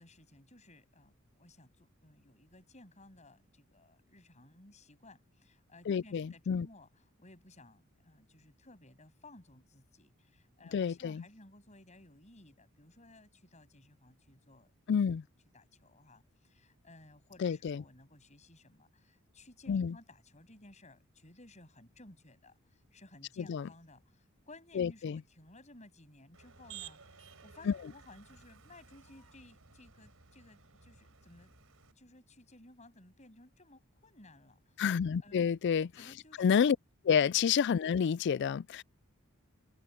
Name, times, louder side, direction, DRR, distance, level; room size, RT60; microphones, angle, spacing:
voice 1, 0.0-15.0 15.5-31.5 31.9-34.8 35.2-35.5 35.9-36.6 37.2-37.4, left 2 dB, 35° left, 7.8 m, -58 dB
voice 2, 5.9-6.7 10.7-11.2 14.9-15.2 17.4-17.8 19.7-19.9 23.5-23.7 24.8-25.2 27.7-27.8 34.8-35.9 36.4-36.8 37.0-38.8, left 7 dB, 55° left, 0.3 m, -29 dB
Motor vehicle (road), 26.3-31.9, right 8 dB, 80° right, 3.9 m, -55 dB
open air
head